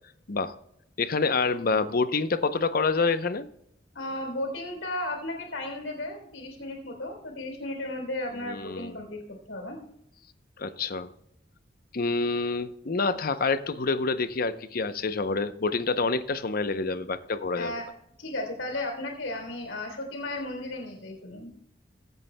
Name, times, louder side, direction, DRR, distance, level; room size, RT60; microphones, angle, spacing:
voice 1, 1.0-3.5 8.4-9.0 10.6-11.1 11.9-17.7, left 4 dB, 50° left, 12 dB, 0.7 m, -27 dB
voice 2, 3.9-9.8 17.6-17.9 18.2-21.5, left 1 dB, 90° left, 2 dB, 3.3 m, -35 dB
22.0 x 8.1 x 2.2 m, 0.74 s
head